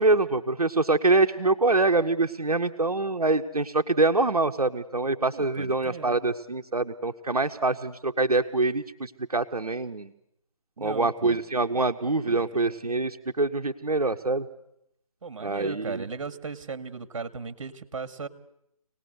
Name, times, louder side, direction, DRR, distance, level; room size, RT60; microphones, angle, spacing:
voice 1, 0.0-10.1 10.8-14.5 15.4-16.0, right 3 dB, 90° right, 5 dB, 1.1 m, -25 dB
voice 2, 5.3-6.2 10.8-11.4 12.2-12.8 15.2-18.3, right 4 dB, 55° right, 14 dB, 1.9 m, -37 dB
25.5 x 18.5 x 8.0 m, 0.78 s
figure-of-eight pair, 150°, 19 cm